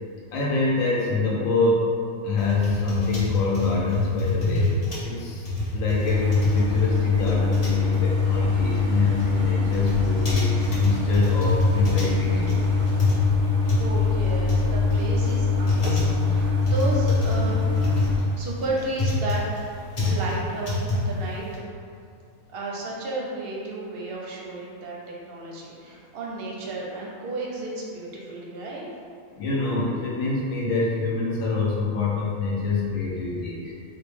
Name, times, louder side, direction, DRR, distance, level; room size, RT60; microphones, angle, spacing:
voice 1, 0.3-12.6 17.4-17.5 18.0-18.2 29.3-33.7, left 3 dB, 80° left, -5 dB, 1.0 m, -26 dB
sound 1, 2.4-21.6, left 2 dB, 30° left, 0.6 m, -27 dB
sound 2, 6.0-18.2, left 4 dB, 15° right, 0.6 m, -23 dB
sound 3, 8.0-13.0, right 2 dB, 90° right, 1.1 m, -35 dB
voice 2, 13.7-17.7 18.4-19.4 20.0-21.7 22.5-28.9, right 2 dB, 60° right, -4 dB, 0.7 m, -33 dB
3.8 x 2.0 x 3.4 m, 2.4 s
omnidirectional pair, 1.4 m